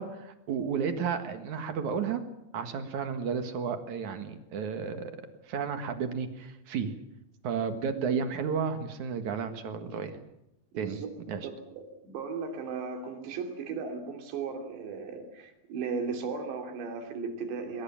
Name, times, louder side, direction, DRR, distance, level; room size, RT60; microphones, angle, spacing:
voice 1, 0.0-2.2 2.5-5.1 5.5-7.0 7.4-10.2 10.8-11.5, right 6 dB, 55° right, 8 dB, 2.4 m, -32 dB
voice 2, 11.4-17.8, right 5 dB, 70° right, 4 dB, 5.0 m, -36 dB
22.5 x 22.5 x 7.4 m, 0.87 s
omnidirectional pair, 5.2 m